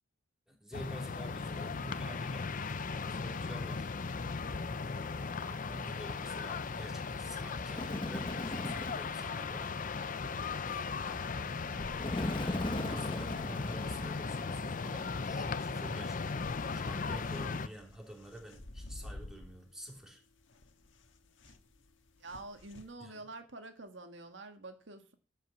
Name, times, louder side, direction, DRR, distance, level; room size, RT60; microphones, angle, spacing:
voice 1, 0.5-2.4 2.9-3.9 4.8-9.7 11.0-11.2 12.1-16.2 16.7-20.2 23.0-23.3, right 1 dB, 5° right, 3.5 m, -48 dB
sound 1, 0.7-17.7, left 4 dB, 45° left, 0.6 m, -37 dB
Bird, 7.7-9.1 12.0-14.5, left 1 dB, 25° left, 1.0 m, -38 dB
voice 2, 11.4-12.4 21.5-21.6 22.2-25.1, right 2 dB, 70° right, 1.7 m, -49 dB
sound 2, 15.1-22.9, left 1 dB, 80° left, 1.6 m, -53 dB
12.5 x 5.7 x 7.4 m
head